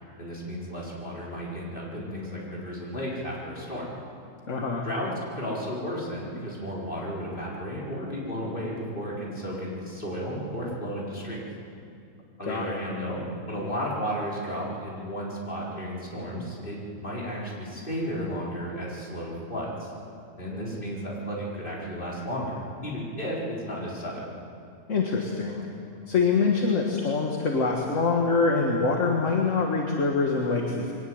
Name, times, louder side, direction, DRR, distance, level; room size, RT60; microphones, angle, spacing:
voice 1, 0.2-3.8 4.8-11.5 12.4-19.9 20.4-24.3, equal, 35° left, -5 dB, 4.8 m, -33 dB
voice 2, 4.5-4.9 12.4-12.8 24.9-25.6 26.1-30.9, left 4 dB, 60° left, 1 dB, 2.0 m, -25 dB
23.0 x 18.5 x 7.8 m, 2.5 s
omnidirectional pair, 1.5 m